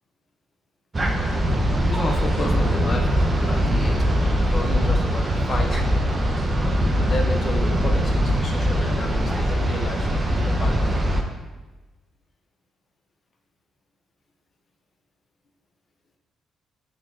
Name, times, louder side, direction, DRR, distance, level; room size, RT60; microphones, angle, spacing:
sound 1, 0.9-11.2, equal, 30° right, 0.4 m, -21 dB
voice 1, 1.9-6.0 7.0-11.0, left 2 dB, 40° left, 2 dB, 0.5 m, -32 dB
3.2 x 2.3 x 3.8 m, 1.2 s
cardioid pair, 90°, 0 cm